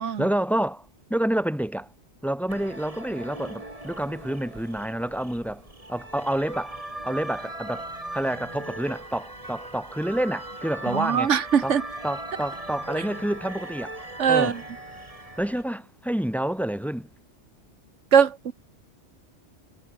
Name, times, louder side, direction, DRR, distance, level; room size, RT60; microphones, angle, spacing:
voice 1, 0.2-1.9 2.2-5.6 5.9-6.8 7.0-11.3 11.6-11.8 12.0-14.0 14.3-14.6 15.4-17.1, right 1 dB, ahead, 1.9 m, -28 dB
sound 1, 2.5-15.6, right 1 dB, 30° right, 3.9 m, -39 dB
voice 2, 10.9-11.8 14.2-14.6 18.1-18.5, right 7 dB, 85° right, 1.5 m, -21 dB
omnidirectional pair, 1.2 m